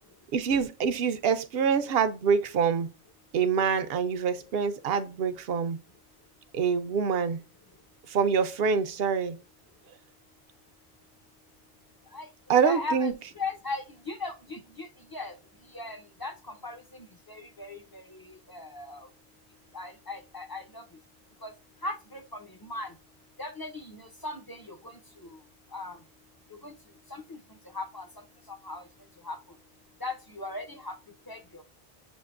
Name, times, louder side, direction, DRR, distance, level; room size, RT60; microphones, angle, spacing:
voice 1, 0.3-2.9 3.3-5.8 6.5-7.4 8.1-9.4 12.5-13.1, right 6 dB, 70° right, 0.8 m, -25 dB
voice 2, 12.6-15.3 15.7-18.0 18.5-19.1 19.7-20.8 21.4-21.5 21.8-22.9 23.4-25.0 25.7-26.0 26.6-26.7 27.1-27.4 27.7-28.1 28.5-28.8 29.2-29.4 30.0-30.9 31.3-31.6, left 3 dB, 30° left, 0.5 m, -38 dB
7.1 x 2.5 x 2.4 m
omnidirectional pair, 1.1 m